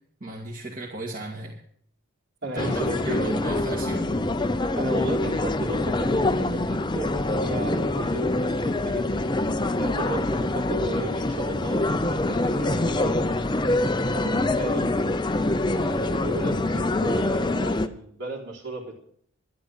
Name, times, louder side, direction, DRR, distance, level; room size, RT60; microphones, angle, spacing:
voice 1, 0.2-1.5 2.5-4.0 14.7-14.9, right 2 dB, 40° right, -3 dB, 2.1 m, -36 dB
voice 2, 2.4-3.4 4.8-9.3 9.8-13.2 14.1-14.9 15.7-19.0, right 2 dB, 55° right, -2 dB, 3.6 m, -34 dB
sound 1, 2.6-17.9, left 2 dB, 20° left, 0.6 m, -25 dB
12.0 x 12.0 x 6.5 m, 0.64 s
head